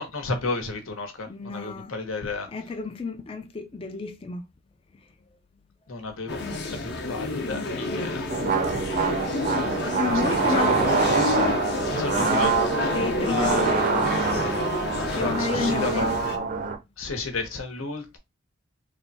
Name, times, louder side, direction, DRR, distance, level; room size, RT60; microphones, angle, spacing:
voice 1, 0.0-2.5 5.9-6.4 6.7-8.2 10.1-11.6 11.9-12.9 13.2-14.6 15.0-16.0 17.0-18.2, left 3 dB, 85° left, 0.9 m, -33 dB
voice 2, 1.3-1.9 2.5-4.4 9.8-10.8 12.9-13.9 15.1-16.1, left 4 dB, 25° left, 0.3 m, -30 dB
sound 1, 6.3-16.4, left 2 dB, 55° left, 0.7 m, -29 dB
sound 2, 8.3-16.8, right 5 dB, 40° right, 0.5 m, -25 dB
3.2 x 2.2 x 4.0 m
head